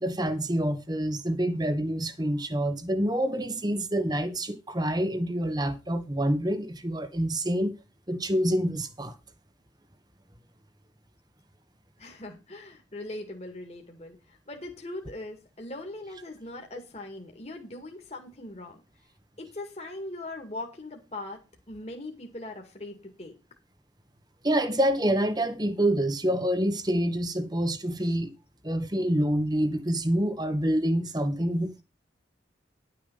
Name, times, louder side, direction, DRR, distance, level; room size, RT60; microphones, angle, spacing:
voice 1, 0.0-7.7 8.1-9.1 24.4-28.3 28.6-31.8, right 1 dB, 20° right, 1.3 m, -27 dB
voice 2, 12.0-18.8 19.4-21.4 21.7-23.4 28.0-28.2, left 2 dB, 35° left, 2.1 m, -40 dB
11.5 x 6.9 x 5.5 m
head